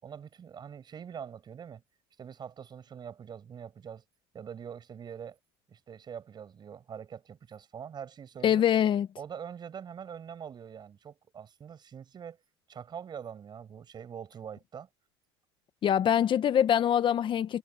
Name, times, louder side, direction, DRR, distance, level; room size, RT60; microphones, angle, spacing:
voice 1, 0.0-1.8 2.2-4.0 4.3-5.4 5.7-8.6 9.2-12.4 12.7-14.9, right 8 dB, 35° right, 6.0 m, -44 dB
voice 2, 8.4-9.1 15.8-17.6, left 9 dB, 45° left, 1.1 m, -24 dB
supercardioid pair, 95°, 12 cm